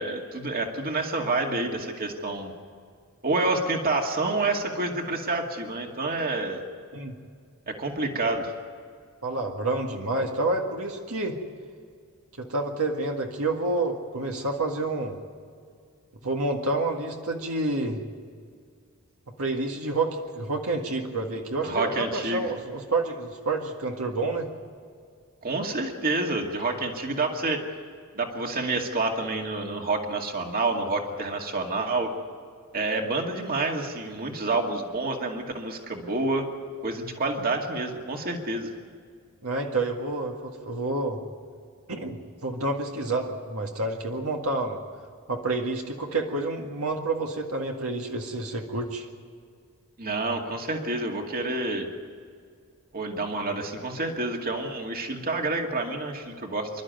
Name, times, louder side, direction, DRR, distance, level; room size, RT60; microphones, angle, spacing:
voice 1, 0.0-2.5 3.2-6.6 7.7-8.5 21.6-22.5 25.4-27.6 28.1-32.1 32.7-36.5 36.8-38.7 50.0-51.9 52.9-56.7, right 2 dB, 40° right, 3 dB, 2.2 m, -28 dB
voice 2, 9.2-11.4 12.4-15.2 16.2-18.0 19.4-24.5 39.4-41.2 41.9-44.8 45.3-49.1, right 2 dB, 70° right, 2 dB, 1.9 m, -29 dB
27.0 x 12.0 x 9.3 m, 2.1 s
head